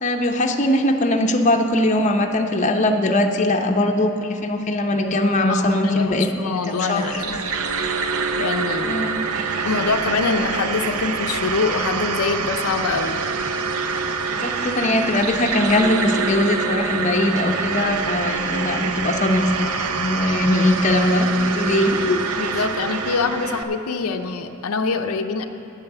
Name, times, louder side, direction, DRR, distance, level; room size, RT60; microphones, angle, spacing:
voice 1, 0.0-6.5 6.9-7.0 8.9-9.2 14.4-22.2, left 1 dB, 35° left, 3 dB, 0.6 m, -20 dB
voice 2, 5.5-7.3 8.4-9.0 9.6-13.2 22.4-25.4, left 4 dB, 80° left, 6 dB, 0.5 m, -24 dB
sound 1, 6.6-23.6, right 5 dB, 80° right, 0.6 m, -25 dB
8.8 x 8.3 x 7.0 m, 2.7 s
head